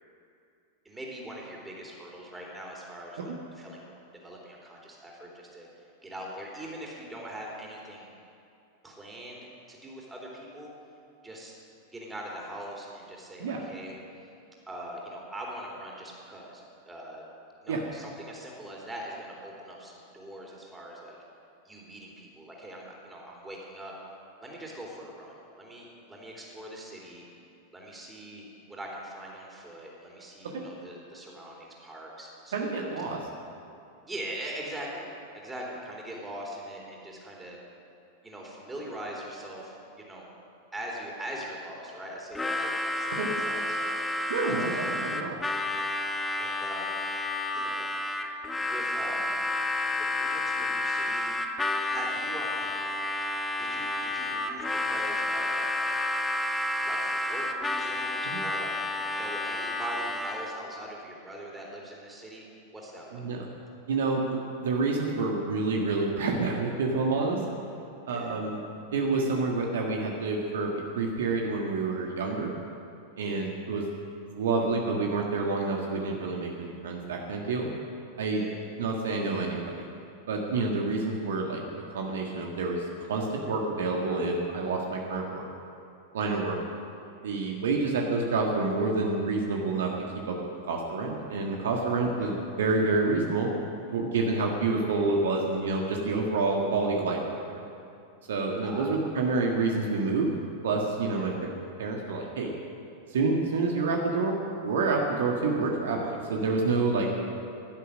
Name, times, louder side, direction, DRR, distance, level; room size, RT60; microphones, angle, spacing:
voice 1, 0.9-8.1 8.8-10.7 11.2-11.6 11.9-14.3 14.7-17.2 17.6-21.2 21.6-23.9 24.4-27.3 27.7-33.0 34.1-37.6 38.2-40.3 40.7-43.9 44.5-44.8 46.4-47.0 47.5-47.8 48.6-49.4 50.2-51.3 51.9-52.7 53.6-55.7 56.8-62.4 62.7-63.2 68.1-68.3 73.2-73.5 78.3-78.6 86.2-86.4 92.1-92.3 98.6-99.0 101.1-101.3, right 1 dB, 10° right, -2 dB, 3.6 m, -42 dB
voice 2, 32.5-33.2 43.1-43.3 44.3-45.3 58.3-58.4 63.1-63.4 63.9-67.4 68.1-68.6 68.9-72.5 73.2-73.9 74.3-77.7 78.2-78.4 78.8-79.8 80.3-81.6 81.9-85.4 86.1-86.6 87.2-89.9 90.3-90.4 90.7-93.5 93.9-97.2 97.5-97.6 98.3-100.3 100.6-101.3 101.8-102.5 103.1-104.3 104.6-107.1, right 3 dB, 60° right, 0 dB, 1.6 m, -28 dB
Harmonica, 42.3-60.6, left 2 dB, 10° left, 1.0 m, -30 dB
16.5 x 11.5 x 6.5 m, 2.6 s
figure-of-eight pair, 90°, 0 cm